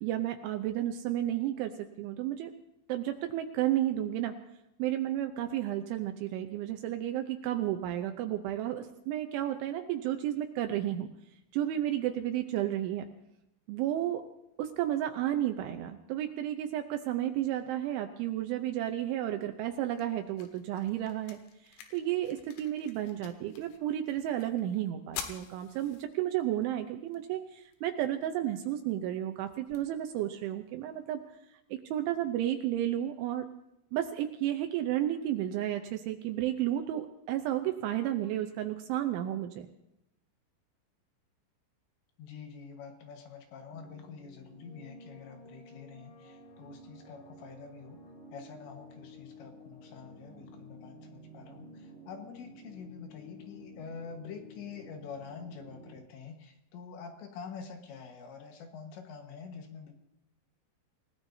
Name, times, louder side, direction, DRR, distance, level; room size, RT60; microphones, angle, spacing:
voice 1, 0.0-1.7 2.0-2.5 2.9-4.3 4.8-11.1 11.5-13.0 13.7-14.2 14.6-31.2 31.7-33.5 33.9-39.7, right 12 dB, 80° right, 6 dB, 3.0 m, -32 dB
sound 1, 19.4-31.4, left 8 dB, 90° left, 4.0 m, -50 dB
voice 2, 42.2-48.0 48.3-59.9, left 6 dB, 70° left, 4 dB, 3.5 m, -46 dB
sound 2, 43.7-56.0, equal, 25° left, 7.3 m, -52 dB
28.0 x 17.0 x 2.7 m, 0.86 s
omnidirectional pair, 5.8 m